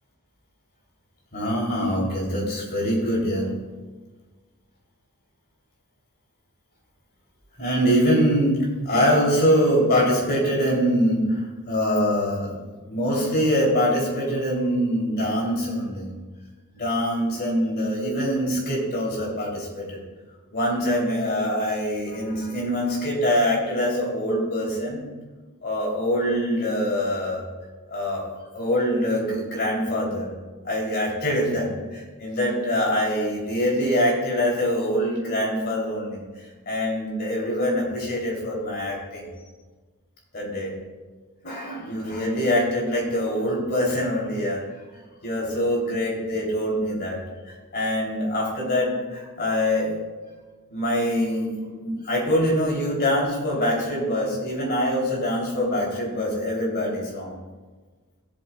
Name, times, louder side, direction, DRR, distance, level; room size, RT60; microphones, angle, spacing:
voice 1, 1.3-3.5 7.6-8.6 8.8-16.1 16.7-20.0 20.5-25.0 25.6-27.4 27.9-30.3 30.6-36.2 36.7-39.2 40.3-40.7 41.4-44.6 45.2-47.2 47.5-50.0 50.7-57.3, equal, 45° left, -3 dB, 3.0 m, -24 dB
15.5 x 7.8 x 2.3 m, 1.4 s
head